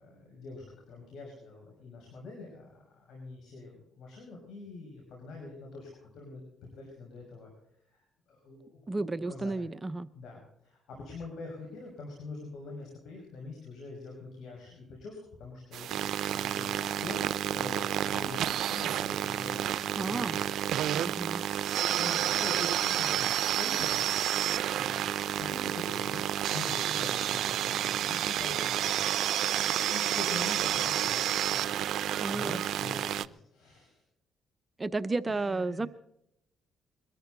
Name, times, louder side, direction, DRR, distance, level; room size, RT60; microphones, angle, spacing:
voice 1, 0.0-7.5 7.9-8.0 8.3-9.0 9.3-9.6 10.1-16.8 17.0-17.2 17.5-20.3 21.9-24.1 24.7-25.0 25.4-29.0 29.9-31.6 32.3-34.0 35.3-35.9, left 3 dB, 75° left, 0 dB, 6.0 m, -44 dB
voice 2, 8.9-10.1 19.9-20.4 20.9-21.4 32.1-32.6 34.8-35.9, right 3 dB, 25° right, 13 dB, 0.7 m, -32 dB
sound 1, 15.7-33.3, right 11 dB, 75° right, 0.5 m, -30 dB
22.0 x 13.5 x 4.0 m, 0.77 s
cardioid pair, 90°, 0 cm